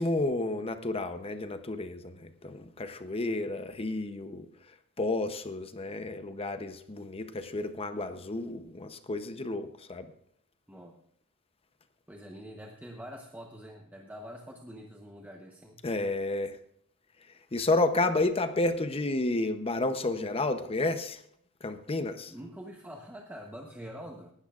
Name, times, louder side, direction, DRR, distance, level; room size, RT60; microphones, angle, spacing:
voice 1, 0.0-4.5 5.0-10.1 15.8-16.6 17.5-21.2 21.6-22.3, left 2 dB, 30° left, 9 dB, 0.7 m, -31 dB
voice 2, 12.1-15.8 22.3-24.3, equal, 10° right, 1 dB, 0.9 m, -45 dB
18.5 x 12.5 x 2.4 m, 0.66 s
head